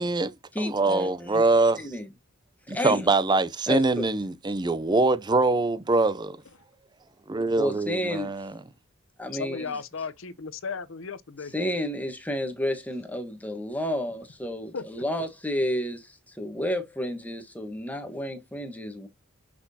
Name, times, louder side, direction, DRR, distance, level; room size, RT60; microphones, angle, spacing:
voice 1, 0.0-1.9 2.7-6.4 7.3-8.5, right 3 dB, 20° right, 0.5 m, -24 dB
voice 2, 0.5-1.4 1.8-2.1 2.7-3.0 3.7-4.0 7.6-8.5 9.2-9.7 11.5-19.1, equal, 5° left, 1.3 m, -31 dB
voice 3, 9.3-11.5 14.7-14.8, left 5 dB, 60° left, 0.7 m, -35 dB
6.0 x 5.9 x 2.7 m
head